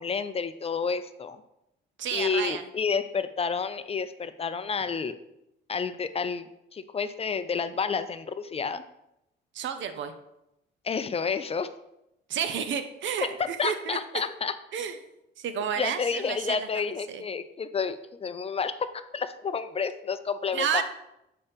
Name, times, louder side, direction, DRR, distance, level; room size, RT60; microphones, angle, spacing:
voice 1, 0.0-1.4 2.1-5.1 5.7-8.8 10.8-11.7 13.6-14.5 15.8-20.8, left 5 dB, 30° left, 11 dB, 0.4 m, -30 dB
voice 2, 2.0-2.6 9.5-10.1 12.3-14.0 14.7-15.0 15.4-16.7 17.1-17.2 20.5-20.8, right 7 dB, 70° right, 9 dB, 0.7 m, -31 dB
7.2 x 4.3 x 3.4 m, 0.86 s
cardioid pair, 90°, 20 cm